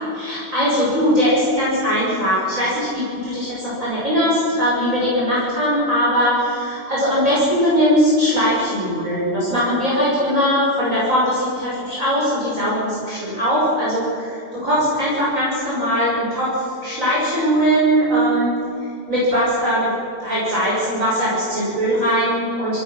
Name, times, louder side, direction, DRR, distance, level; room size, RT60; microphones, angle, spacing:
voice 1, 0.1-18.5 19.1-19.9 20.2-22.8, equal, 35° right, -8 dB, 6.6 m, -20 dB
26.5 x 18.5 x 6.5 m, 2.8 s
omnidirectional pair, 2.4 m